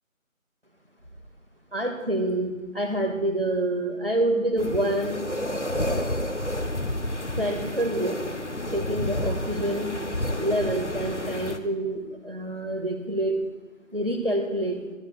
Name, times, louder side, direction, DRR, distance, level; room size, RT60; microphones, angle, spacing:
voice 1, 1.7-5.2 7.4-8.2 8.7-9.9 10.4-13.4 13.9-14.8, right 1 dB, 45° right, 4 dB, 2.0 m, -27 dB
sound 1, 4.6-11.6, left 1 dB, 60° left, 1.0 m, -30 dB
25.0 x 12.0 x 2.4 m, 1.2 s
figure-of-eight pair, 180°, 41 cm